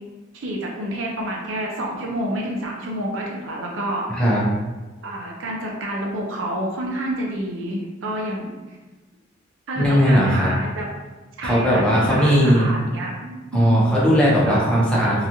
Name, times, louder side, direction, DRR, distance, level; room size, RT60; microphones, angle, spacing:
voice 1, 0.3-4.5 5.0-8.5 9.7-10.9 11.4-13.8 14.5-14.7, right 1 dB, 65° right, -1 dB, 0.6 m, -28 dB
voice 2, 9.8-10.5 11.4-12.7 13.5-15.3, equal, 5° left, -7 dB, 0.7 m, -18 dB
2.9 x 2.3 x 2.6 m, 1.2 s
head